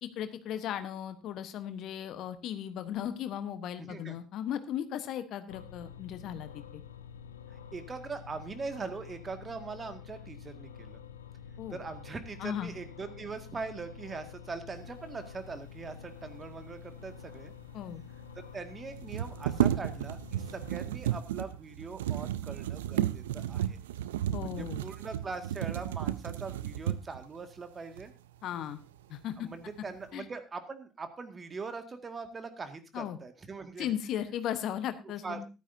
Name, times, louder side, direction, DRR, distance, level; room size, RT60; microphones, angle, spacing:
voice 1, 0.0-6.8 11.6-11.8 12.4-12.7 17.7-18.0 24.3-24.8 28.4-28.8 29.1-29.5 30.1-30.3 32.9-33.2 33.8-35.5, left 10 dB, 60° left, 11 dB, 1.1 m, -36 dB
voice 2, 3.8-4.2 7.7-11.0 11.7-17.5 18.5-23.8 24.4-28.1 29.4-33.9 35.2-35.4, right 4 dB, 35° right, 8 dB, 2.0 m, -41 dB
sound 1, 5.5-20.9, left 7 dB, 90° left, 0.8 m, -48 dB
sound 2, 17.5-17.6 17.7-17.8 18.9-27.3 28.0-28.1 28.5-29.2 29.5-30.1, right 11 dB, 80° right, 0.5 m, -33 dB
14.0 x 12.0 x 2.7 m, 0.28 s
hypercardioid pair, 55°, 0 cm